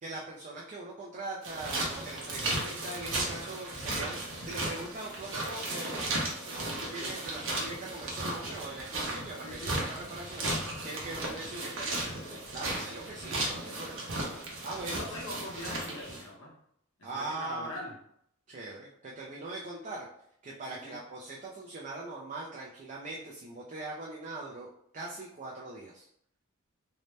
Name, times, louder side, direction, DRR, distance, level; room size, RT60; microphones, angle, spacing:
voice 1, 0.0-6.2 6.5-14.0 14.6-15.0 17.0-17.7 18.5-20.1 20.4-26.1, right 2 dB, 35° right, -3 dB, 0.4 m, -41 dB
sound 1, 1.4-16.3, right 2 dB, 65° right, 0.7 m, -35 dB
voice 2, 9.4-9.9 14.9-16.6 17.0-17.9 20.7-21.0, left 1 dB, 70° left, -4 dB, 0.9 m, -42 dB
2.6 x 2.1 x 3.2 m, 0.70 s
head